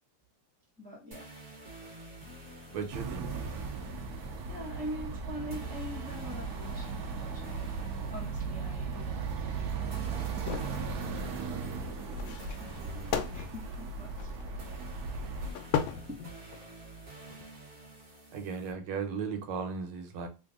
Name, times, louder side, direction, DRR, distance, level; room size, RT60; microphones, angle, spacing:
voice 1, 0.8-1.3 4.1-10.6 11.5-14.3 16.1-16.3, equal, 5° left, 0.8 m, -45 dB
sound 1, 1.1-18.7, right 1 dB, 30° right, 1.2 m, -49 dB
voice 2, 2.7-3.3 15.1-15.4 18.3-20.3, right 6 dB, 90° right, 1.6 m, -36 dB
sound 2, 2.9-15.5, right 4 dB, 65° right, 1.0 m, -37 dB
sound 3, 10.2-10.9 12.1-14.6 15.5-16.7 17.2-17.4, left 8 dB, 75° left, 1.3 m, -36 dB
3.5 x 2.6 x 3.5 m
omnidirectional pair, 2.3 m